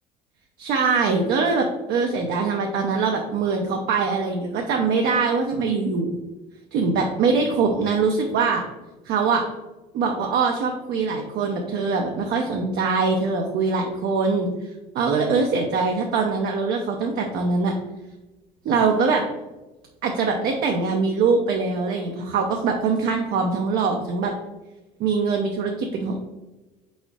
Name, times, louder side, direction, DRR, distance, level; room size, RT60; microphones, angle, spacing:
voice 1, 0.6-6.2 6.7-8.6 9.1-9.4 9.9-14.5 14.9-17.7 18.6-19.2 20.0-24.3 25.0-26.2, right 4 dB, 65° right, 2 dB, 0.6 m, -23 dB
4.6 x 4.2 x 2.3 m, 1.1 s
supercardioid pair, 90°, 18 cm